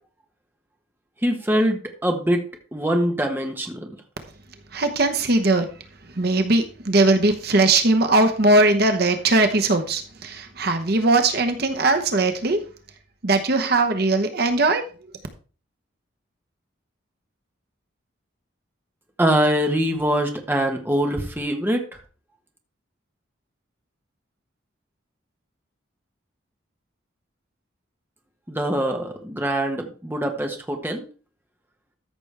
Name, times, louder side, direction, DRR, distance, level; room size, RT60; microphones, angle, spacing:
voice 1, 1.2-4.0 19.2-21.9 28.5-31.0, equal, 10° right, 3 dB, 1.2 m, -23 dB
voice 2, 4.7-12.6 13.2-14.8, right 2 dB, 50° right, 6 dB, 1.0 m, -20 dB
13.5 x 6.0 x 3.4 m, 0.37 s
head